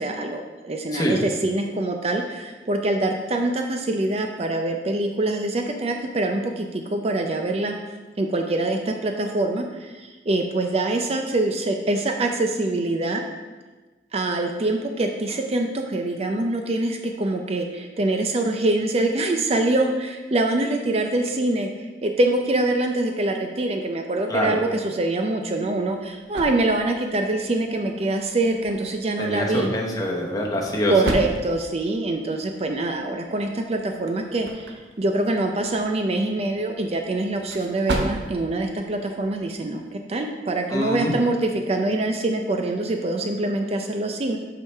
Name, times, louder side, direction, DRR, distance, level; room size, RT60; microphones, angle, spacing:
voice 1, 0.0-7.8 8.2-13.2 14.1-29.7 30.9-44.4, right 2 dB, 35° right, 4 dB, 0.4 m, -24 dB
voice 2, 0.9-1.2 24.3-24.6 29.2-31.1 40.7-41.2, equal, 20° left, -1 dB, 1.0 m, -24 dB
sound 1, 25.4-39.9, right 1 dB, 80° right, 0.8 m, -37 dB
8.3 x 4.7 x 3.4 m, 1.3 s
head